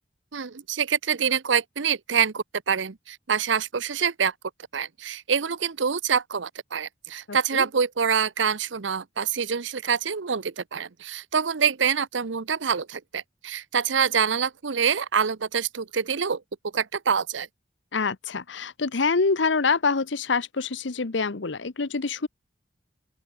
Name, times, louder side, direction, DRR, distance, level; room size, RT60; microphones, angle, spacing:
voice 1, 0.3-4.3 4.7-16.4 16.7-17.5, right 7 dB, 90° right, 0.8 m, -26 dB
voice 2, 7.3-7.6 17.9-22.3, left 4 dB, 80° left, 1.0 m, -26 dB
open air
head